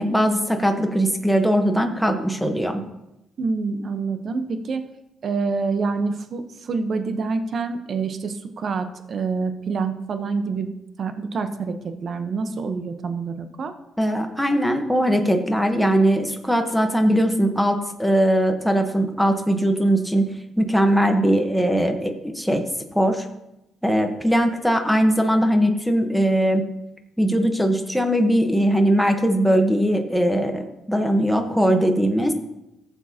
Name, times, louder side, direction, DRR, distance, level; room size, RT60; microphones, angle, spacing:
voice 1, 0.0-2.8 14.0-20.2 20.6-22.6 22.9-23.3 23.8-26.6 27.2-32.3, equal, ahead, 5 dB, 1.0 m, -20 dB
voice 2, 3.4-4.9 5.2-10.7 11.0-11.8 12.0-13.7, right 4 dB, 50° right, 8 dB, 0.8 m, -26 dB
14.5 x 7.2 x 2.8 m, 0.89 s
cardioid pair, 90°, 0 cm